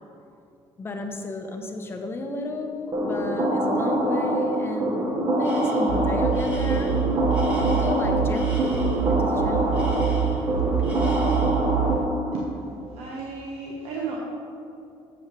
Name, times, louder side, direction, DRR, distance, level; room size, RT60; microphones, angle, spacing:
voice 1, 0.8-5.0 5.3-7.0 7.8-8.7 8.9-9.9, left 2 dB, 20° left, 3 dB, 0.8 m, -32 dB
sound 1, 2.9-12.4, equal, 35° right, 1.2 m, -24 dB
Tools, 5.4-6.0 6.3-9.1 9.7-10.5 10.8-11.7, equal, 10° right, 1.9 m, -42 dB
sound 2, 5.9-12.1, right 12 dB, 90° right, 0.5 m, -27 dB
voice 2, 12.9-14.2, right 4 dB, 65° right, -3 dB, 1.1 m, -33 dB
7.2 x 5.5 x 6.9 m, 2.6 s
cardioid pair, 155°, 11 cm